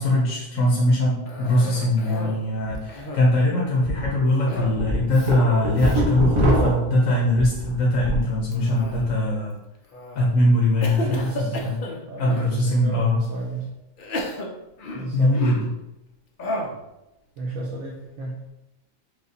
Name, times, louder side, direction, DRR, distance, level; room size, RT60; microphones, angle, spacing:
voice 1, 0.0-9.6 10.1-11.8 12.2-13.2 15.1-15.6, left 1 dB, 80° left, -4 dB, 1.2 m, -21 dB
Cough, 1.3-2.4 2.8-3.4 4.5-4.8 5.1-5.3 5.8-6.0 6.5-7.0 8.5-9.3 9.9-10.3 10.8-12.6 13.2-13.3 14.0-15.8 16.4-16.8, left 1 dB, 55° left, 0.6 m, -33 dB
sound 1, 2.7-2.8 3.2-3.3 3.8-4.1 4.5-8.3 8.7-9.1, equal, 25° right, 0.9 m, -24 dB
voice 2, 11.0-11.7 12.1-13.7 14.9-15.4 17.4-18.4, right 3 dB, 85° right, -2 dB, 1.1 m, -31 dB
4.9 x 2.3 x 3.9 m, 0.92 s
omnidirectional pair, 1.4 m